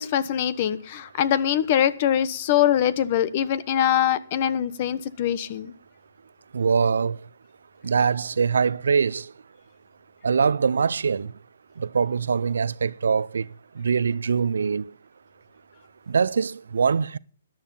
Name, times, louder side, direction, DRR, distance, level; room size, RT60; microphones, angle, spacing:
voice 1, 0.0-5.7, left 10 dB, 40° left, 1.1 m, -23 dB
voice 2, 6.5-7.2 7.8-9.2 10.2-11.3 11.8-13.4 13.8-14.8 16.1-17.2, right 6 dB, 80° right, 0.6 m, -23 dB
13.5 x 10.5 x 5.6 m
hypercardioid pair, 150°, 0 cm